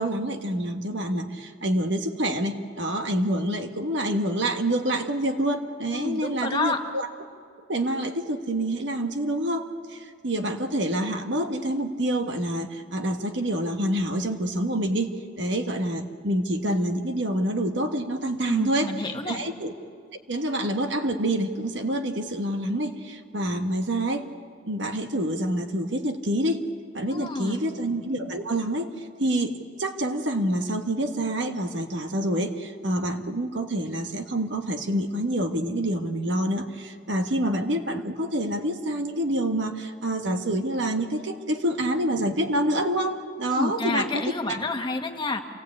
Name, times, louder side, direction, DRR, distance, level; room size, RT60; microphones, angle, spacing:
voice 1, 0.0-7.1 7.7-18.9 19.3-19.7 20.3-24.3 24.7-26.6 26.9-28.9 29.2-29.5 29.8-44.2 44.5-44.6, right 1 dB, 65° right, 5 dB, 1.5 m, -27 dB
voice 2, 5.9-6.8 18.4-19.4 27.1-27.6 43.5-45.4, left 3 dB, 25° left, 4 dB, 1.5 m, -29 dB
27.5 x 18.0 x 8.5 m, 2.2 s
head